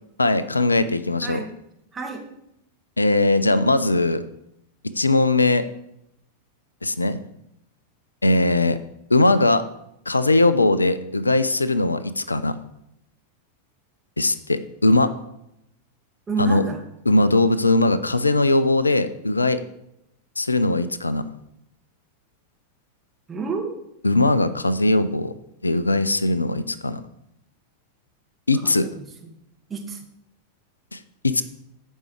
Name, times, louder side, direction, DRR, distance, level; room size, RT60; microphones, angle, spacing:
voice 1, 0.2-1.4 3.0-4.2 5.0-5.7 6.8-7.2 8.2-8.8 9.1-9.6 10.1-12.6 14.2-15.1 16.4-16.7 17.1-19.6 20.4-21.2 24.0-25.3 25.6-27.0 28.5-28.9 30.9-31.4, left 2 dB, 80° left, 15 dB, 0.5 m, -20 dB
voice 2, 1.9-2.2 16.3-16.8 23.3-23.7 28.6-29.3 29.7-30.0, right 4 dB, 15° right, 1 dB, 2.0 m, -30 dB
14.0 x 5.5 x 4.8 m, 0.81 s
figure-of-eight pair, 90°, 0 cm